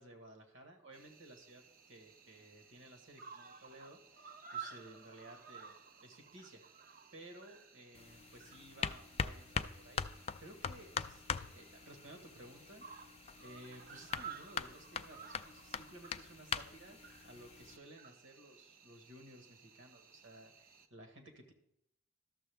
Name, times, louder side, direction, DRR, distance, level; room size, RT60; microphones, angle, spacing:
voice 1, 0.0-6.6 7.1-12.8 13.4-17.0 17.2-21.5, right 1 dB, 65° right, 4 dB, 1.6 m, -56 dB
Cricket, 0.9-20.9, right 6 dB, 45° right, 0.7 m, -55 dB
sound 1, 7.9-17.8, left 6 dB, 30° left, 0.3 m, -43 dB
12.5 x 6.8 x 3.5 m, 0.78 s
head